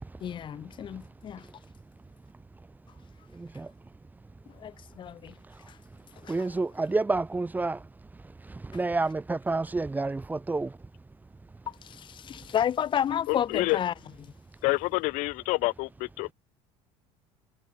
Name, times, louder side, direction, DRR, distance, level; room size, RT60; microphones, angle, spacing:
voice 1, 0.2-1.4 4.6-5.3 6.2-6.3 11.8-13.9, left 9 dB, 35° left, 2.2 m, -31 dB
voice 2, 6.3-7.8 8.7-10.7, right 3 dB, 15° right, 3.2 m, -28 dB
voice 3, 13.3-13.8 14.6-16.3, left 24 dB, 70° left, 6.1 m, -28 dB
supercardioid pair, 120°, 13 cm